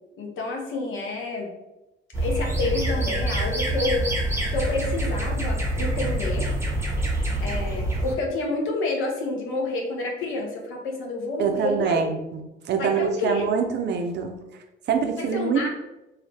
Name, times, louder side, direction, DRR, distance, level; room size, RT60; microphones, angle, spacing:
voice 1, 0.2-1.5 2.2-4.1 4.5-6.5 7.4-12.0 12.8-13.4 15.1-15.7, left 2 dB, 80° left, 1 dB, 0.7 m, -29 dB
sound 1, 2.1-8.2, right 1 dB, 15° right, 0.7 m, -26 dB
voice 2, 11.4-12.4 12.7-14.4 14.9-15.7, right 6 dB, 60° right, 5 dB, 0.4 m, -24 dB
2.5 x 2.1 x 3.2 m, 0.95 s
cardioid pair, 90°, 20 cm